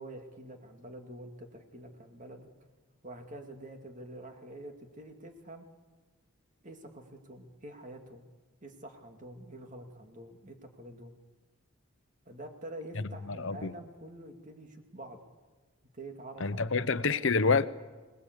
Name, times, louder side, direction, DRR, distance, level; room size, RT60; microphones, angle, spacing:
voice 1, 0.0-2.5 3.0-5.7 6.6-8.2 8.6-11.1 12.3-15.2 15.9-16.9, right 1 dB, 35° right, 2.5 m, -47 dB
voice 2, 13.3-13.7 16.4-17.7, left 4 dB, 55° left, 0.8 m, -27 dB
25.5 x 19.5 x 8.2 m
head